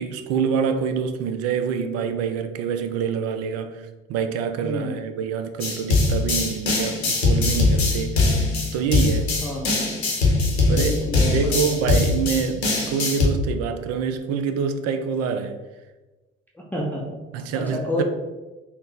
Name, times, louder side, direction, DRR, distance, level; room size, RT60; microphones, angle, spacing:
voice 1, 0.0-8.2 8.7-9.3 10.7-11.0 11.3-15.6 17.3-18.0, right 6 dB, 50° right, 0.4 m, -26 dB
voice 2, 4.6-5.0 9.4-9.7 10.7-11.6 16.6-17.2 17.5-18.0, left 1 dB, 5° left, 0.5 m, -29 dB
sound 1, 5.6-13.3, left 3 dB, 85° left, 0.8 m, -21 dB
3.8 x 2.0 x 3.9 m
figure-of-eight pair, 50°, 32 cm